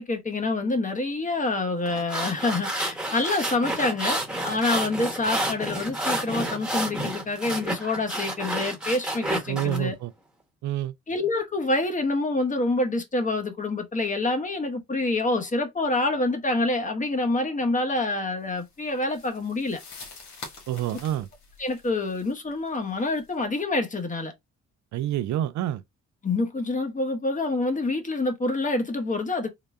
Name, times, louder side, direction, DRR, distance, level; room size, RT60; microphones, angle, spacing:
voice 1, 0.0-10.0 11.1-19.8 21.6-24.3 26.2-29.5, left 2 dB, 25° left, 1.1 m, -27 dB
sound 1, 1.9-9.8, right 1 dB, 5° right, 1.2 m, -30 dB
voice 2, 9.5-10.1 10.6-10.9 20.7-21.3 24.9-25.8, right 12 dB, 70° right, 0.5 m, -27 dB
sound 2, 18.5-23.4, left 3 dB, 70° left, 1.5 m, -46 dB
3.9 x 2.2 x 3.4 m
cardioid pair, 90°, 30 cm